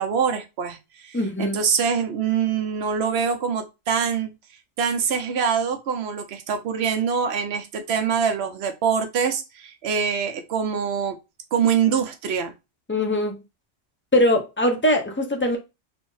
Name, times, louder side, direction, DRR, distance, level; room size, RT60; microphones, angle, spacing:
voice 1, 0.0-4.3 4.8-11.2 11.5-12.5, right 7 dB, 65° right, 0.9 m, -24 dB
voice 2, 1.1-1.6 12.9-13.4 14.1-15.6, left 1 dB, 15° left, 0.4 m, -21 dB
3.4 x 2.0 x 3.8 m
omnidirectional pair, 1.2 m